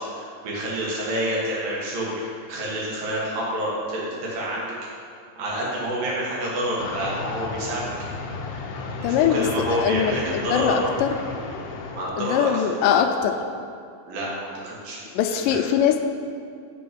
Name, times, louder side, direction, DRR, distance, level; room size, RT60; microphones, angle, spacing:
voice 1, 0.0-4.7 5.4-7.9 9.0-10.8 12.0-12.7 14.1-15.0 15.3-15.6, right 1 dB, 90° right, -5 dB, 3.4 m, -28 dB
sound 1, 6.8-12.1, left 3 dB, 75° left, 2.1 m, -33 dB
voice 2, 9.0-10.1 10.5-11.1 12.2-13.4 15.2-16.0, left 8 dB, 90° left, 6 dB, 2.2 m, -21 dB
6.9 x 6.5 x 5.2 m, 2.3 s
omnidirectional pair, 3.8 m